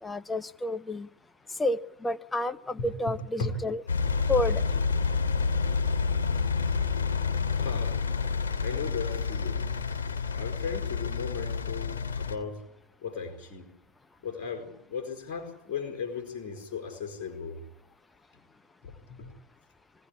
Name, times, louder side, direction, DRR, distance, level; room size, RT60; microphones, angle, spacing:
voice 1, 0.0-1.1 1.6-3.8 4.3-4.7, left 2 dB, 15° left, 11 dB, 0.9 m, -30 dB
voice 2, 2.8-3.5 7.6-8.0 8.6-9.7 10.4-12.6 13.0-13.6 14.2-17.6 18.8-19.3, left 5 dB, 60° left, 4 dB, 4.6 m, -36 dB
Engine, 3.9-12.4, left 5 dB, 80° left, 2.9 m, -28 dB
24.5 x 17.0 x 9.9 m, 0.88 s
figure-of-eight pair, 75°, 0 cm